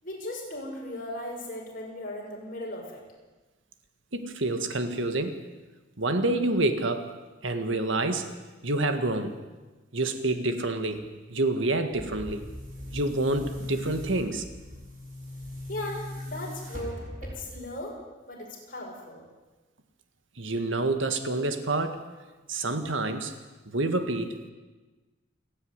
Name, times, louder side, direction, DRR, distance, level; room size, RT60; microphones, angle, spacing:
voice 1, 0.0-3.0 15.7-18.0 18.3-19.2, left 1 dB, 45° left, -2 dB, 6.1 m, -37 dB
voice 2, 4.1-5.4 6.0-7.1 7.4-8.3 8.6-9.4 9.9-12.4 12.9-14.5 20.4-22.0 22.5-23.3 23.7-24.5, right 2 dB, 80° right, 8 dB, 1.8 m, -28 dB
Boom, 11.9-17.7, left 1 dB, 40° right, 6.5 m, -39 dB
28.5 x 9.7 x 9.6 m, 1.2 s
head